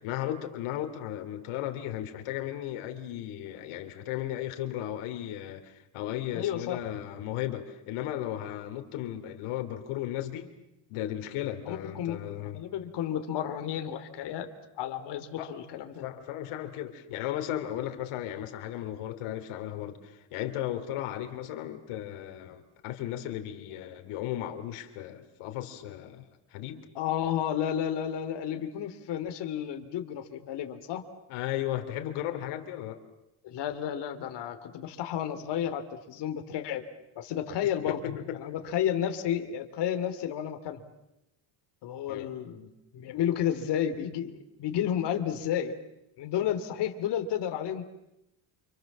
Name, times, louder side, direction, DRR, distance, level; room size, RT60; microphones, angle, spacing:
voice 1, 0.0-10.5 10.9-12.6 15.4-15.5 16.0-26.9 31.3-33.0 37.8-38.4 42.1-42.3, left 12 dB, 85° left, 6 dB, 3.2 m, -35 dB
voice 2, 6.3-6.8 11.7-12.2 12.5-14.5 14.8-16.0 26.9-31.0 33.4-36.8 37.2-38.0 38.4-40.8 41.8-45.7 46.2-47.8, left 10 dB, 55° left, 7 dB, 2.9 m, -31 dB
29.5 x 27.0 x 7.4 m, 0.88 s
cardioid pair, 160°, 49 cm